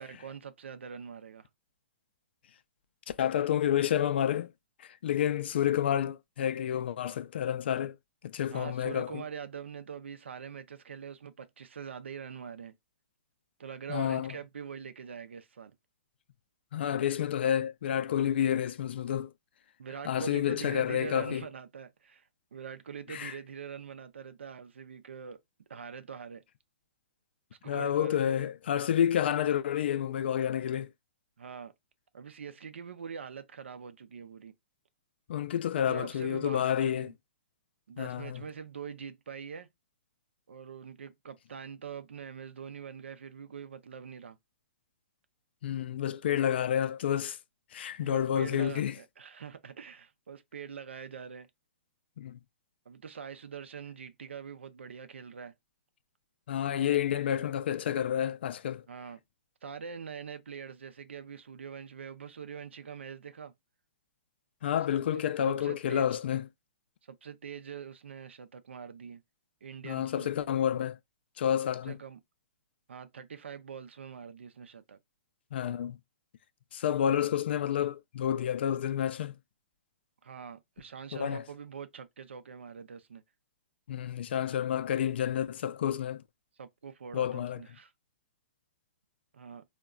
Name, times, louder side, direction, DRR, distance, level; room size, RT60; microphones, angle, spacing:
voice 1, 0.0-1.5 8.5-12.7 13.6-15.7 19.8-25.4 25.7-26.4 27.6-28.5 31.4-31.7 32.1-34.5 35.9-37.1 37.9-39.7 40.5-44.4 48.0-51.5 52.9-55.5 56.8-57.0 58.9-59.2 59.6-63.5 65.1-66.1 67.1-69.2 69.6-70.3 71.8-72.2 72.9-75.0 80.2-83.2 86.6-87.9 89.3-89.6, right 6 dB, 90° right, 0.5 m, -43 dB
voice 2, 3.1-4.5 4.8-8.0 8.2-9.2 13.9-14.4 16.7-19.3 20.0-21.5 23.1-23.4 27.7-30.9 35.3-37.1 38.0-38.4 45.6-47.4 47.7-48.9 52.2-52.4 56.5-58.8 64.6-66.5 69.8-71.0 71.4-72.0 75.5-76.0 76.7-79.4 81.1-81.4 83.9-86.2 87.1-87.6, left 10 dB, 65° left, 0.3 m, -29 dB
3.7 x 2.1 x 2.2 m
hypercardioid pair, 140°, 6 cm